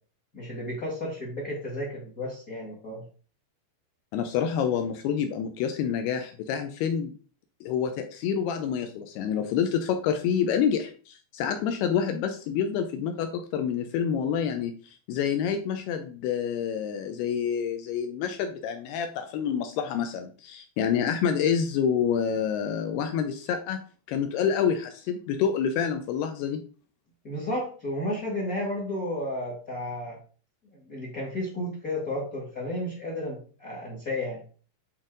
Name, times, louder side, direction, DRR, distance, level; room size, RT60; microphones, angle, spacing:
voice 1, 0.3-3.0 27.2-30.2 30.8-34.4, left 1 dB, 45° left, -2 dB, 1.1 m, -32 dB
voice 2, 4.1-7.1 7.6-14.7 15.1-23.8 24.1-26.6, left 7 dB, 85° left, 7 dB, 2.3 m, -27 dB
9.8 x 4.3 x 3.8 m, 0.39 s
omnidirectional pair, 5.4 m